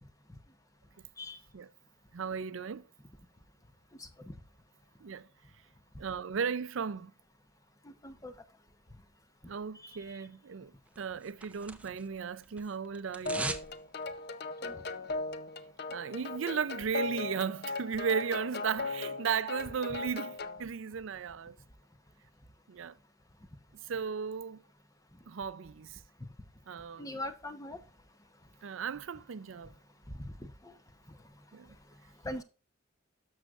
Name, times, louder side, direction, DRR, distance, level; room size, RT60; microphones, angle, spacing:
voice 1, 2.1-2.8 5.0-5.3 6.0-7.1 9.5-13.5 15.9-21.6 22.7-23.0 23.9-24.6 25.3-26.0 26.7-27.2 28.6-29.7 31.5-31.7, right 6 dB, 70° right, 0.5 m, -35 dB
sound 1, 10.9-12.2 12.4-13.7 14.0-14.1, right 2 dB, 5° right, 0.5 m, -39 dB
sound 2, 13.3-20.6, left 3 dB, 50° left, 0.6 m, -38 dB
voice 2, 27.0-27.8 30.6-30.7 32.2-32.4, left 1 dB, 15° left, 0.8 m, -40 dB
12.5 x 6.4 x 2.4 m
head